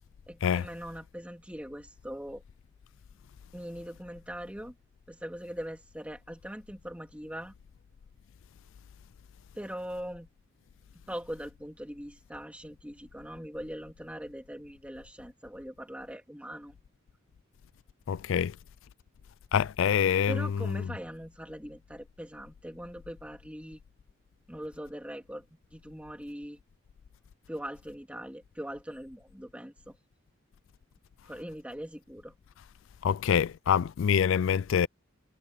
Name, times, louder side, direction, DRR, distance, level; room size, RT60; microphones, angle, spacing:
voice 1, 0.3-2.4 3.5-4.7 5.1-7.5 9.5-10.3 11.1-16.8 20.3-23.8 24.5-25.4 25.7-26.6 27.5-29.9 31.2-32.3, equal, 5° right, 2.4 m, -41 dB
voice 2, 18.1-18.6 19.5-20.7 33.0-34.9, left 8 dB, 65° left, 0.3 m, -26 dB
head